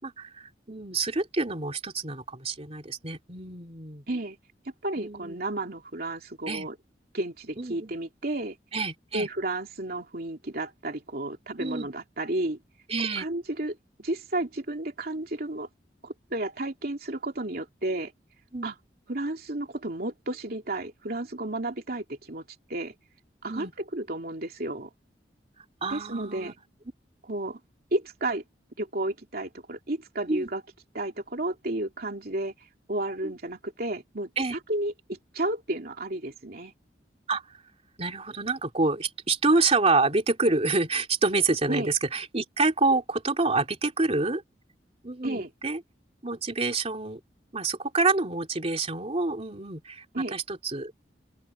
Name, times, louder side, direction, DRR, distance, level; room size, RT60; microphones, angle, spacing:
voice 1, 0.0-4.0 5.0-5.4 6.5-6.7 7.6-7.9 8.7-9.3 11.6-11.9 12.9-13.3 18.5-18.7 23.5-23.7 25.8-26.5 30.3-30.5 33.2-33.3 34.4-34.6 37.3-37.6 38.0-44.4 45.0-45.8 46.2-47.2 47.5-50.0 50.3-50.9, right 3 dB, 35° right, 3.1 m, -27 dB
voice 2, 4.8-6.7 7.1-8.6 9.1-12.6 13.2-15.7 16.0-18.1 18.6-18.7 19.1-22.4 22.7-22.9 23.4-24.9 25.9-26.5 27.3-27.6 27.9-28.4 28.8-30.6 30.9-32.5 32.9-34.3 34.7-36.7 41.7-41.9 45.2-45.5 50.1-50.4, right 2 dB, 60° right, 2.9 m, -32 dB
open air
head